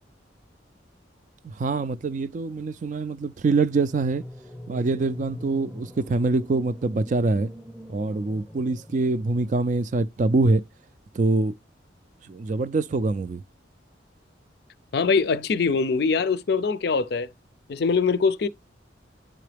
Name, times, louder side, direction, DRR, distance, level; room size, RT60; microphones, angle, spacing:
voice 1, 1.4-4.2 4.7-7.5 7.9-10.6 11.1-11.5 12.3-13.4, right 3 dB, 40° right, 0.3 m, -24 dB
sound 1, 3.7-9.9, equal, 5° right, 0.7 m, -42 dB
voice 2, 14.9-17.3 17.7-18.5, left 5 dB, 55° left, 0.4 m, -23 dB
10.0 x 3.8 x 3.3 m
head